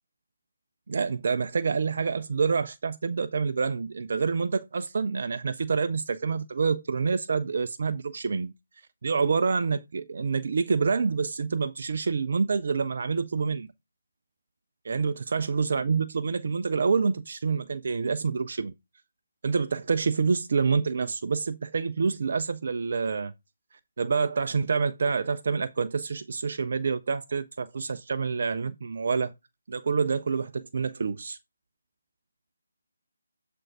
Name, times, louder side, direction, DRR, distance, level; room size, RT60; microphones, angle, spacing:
voice 1, 0.9-8.5 9.0-13.7 14.8-18.7 19.4-23.3 24.0-29.3 29.7-31.4, right 5 dB, 45° right, 0.4 m, -27 dB
7.5 x 2.5 x 5.7 m
figure-of-eight pair, 150°, 0 cm